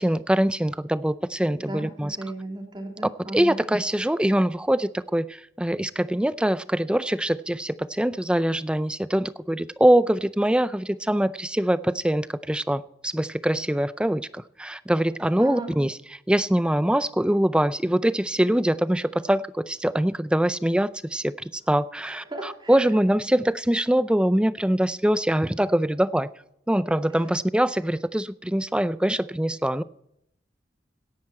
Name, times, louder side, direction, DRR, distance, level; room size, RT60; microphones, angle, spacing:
voice 1, 0.0-2.2 3.3-26.3 26.7-29.8, right 1 dB, 5° right, 15 dB, 0.4 m, -23 dB
voice 2, 1.5-1.9 2.2-3.6 15.4-15.7 22.0-22.7 26.9-27.0, right 2 dB, 25° right, 0 dB, 3.3 m, -35 dB
17.5 x 10.5 x 4.4 m, 0.77 s
head